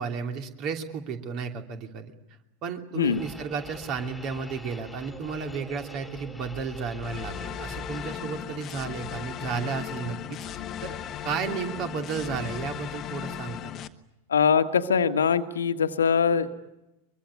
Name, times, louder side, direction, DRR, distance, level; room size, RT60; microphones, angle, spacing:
voice 1, 0.0-2.1 2.6-10.2 10.8-11.0 11.2-13.6, right 5 dB, 40° right, 5 dB, 2.9 m, -33 dB
sound 1, 3.0-8.2, equal, 5° left, 3.1 m, -43 dB
sound 2, 7.0-13.9, left 10 dB, 30° left, 1.3 m, -36 dB
voice 2, 14.3-16.5, left 6 dB, 70° left, 10 dB, 1.4 m, -22 dB
23.5 x 23.5 x 9.6 m, 0.92 s
figure-of-eight pair, 90°, 0 cm